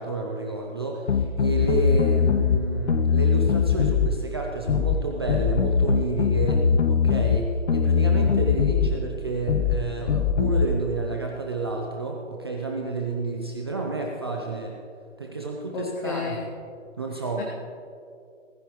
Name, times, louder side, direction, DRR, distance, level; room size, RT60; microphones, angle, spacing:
voice 1, 0.0-14.8 15.2-16.3 17.0-17.4, right 3 dB, 20° right, 0 dB, 0.6 m, -30 dB
sound 1, 1.1-2.6 2.9-4.1 4.7-5.0 5.3-7.4 7.7-8.9 9.5-9.8 10.1-10.7, left 6 dB, 65° left, 1.0 m, -21 dB
voice 2, 15.7-16.4 17.4-17.5, left 5 dB, 40° left, -1 dB, 1.3 m, -31 dB
18.5 x 15.0 x 3.1 m, 2.4 s
hypercardioid pair, 160°, 38 cm